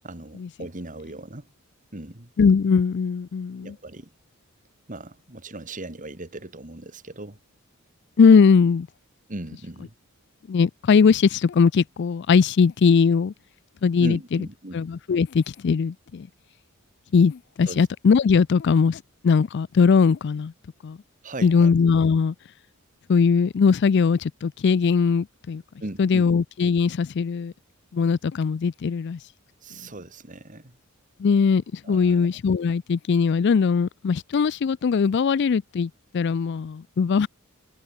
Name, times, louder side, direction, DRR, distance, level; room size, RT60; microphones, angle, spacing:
voice 1, 0.0-1.5 1.9-2.3 3.6-4.1 4.9-7.4 9.3-9.9 14.0-14.8 17.6-17.9 21.2-21.7 25.8-26.3 29.6-30.8 31.8-32.3, right 1 dB, 35° right, 2.3 m, -38 dB
voice 2, 2.4-3.7 8.2-8.9 10.5-13.3 13.8-14.2 14.7-16.3 17.1-20.5 20.8-21.0 21.4-22.3 23.1-25.6 26.0-27.5 27.9-29.2 31.2-37.3, left 5 dB, 55° left, 0.4 m, -20 dB
head